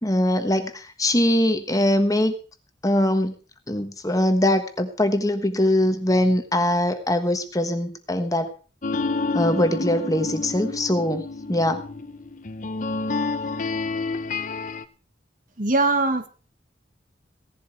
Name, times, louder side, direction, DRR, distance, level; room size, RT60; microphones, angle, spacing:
voice 1, 0.0-2.3 2.8-3.3 3.7-8.5 9.3-11.8, left 1 dB, 20° left, 8 dB, 1.3 m, -22 dB
sound 1, 8.8-14.8, left 3 dB, 45° left, 0.8 m, -29 dB
voice 2, 15.6-16.3, right 2 dB, 50° right, 8 dB, 1.7 m, -21 dB
16.5 x 11.5 x 4.6 m, 0.37 s
head